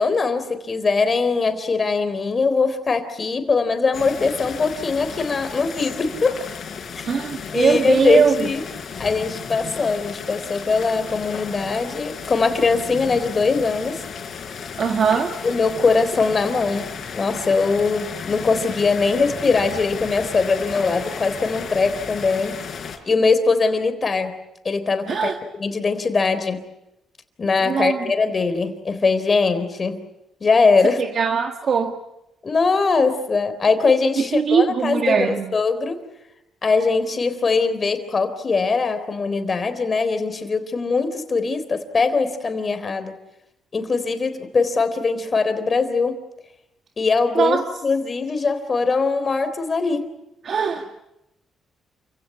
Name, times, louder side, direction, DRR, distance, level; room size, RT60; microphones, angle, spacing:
voice 1, 0.0-6.4 7.0-7.1 7.5-8.6 9.0-14.0 15.4-22.6 23.1-24.3 24.6-26.6 27.4-30.0 30.4-31.0 32.4-36.0 36.6-43.2 43.7-46.2 47.0-50.1, left 4 dB, 35° left, 10 dB, 3.8 m, -21 dB
sound 1, 3.9-23.0, left 6 dB, 55° left, 4.5 m, -34 dB
voice 2, 7.0-8.5 14.8-15.3 25.1-25.3 27.7-28.0 31.0-32.0 34.3-35.5 47.3-47.6 50.4-50.8, right 6 dB, 50° right, 4 dB, 1.8 m, -20 dB
29.0 x 16.5 x 9.4 m, 0.90 s
cardioid pair, 90°, 0 cm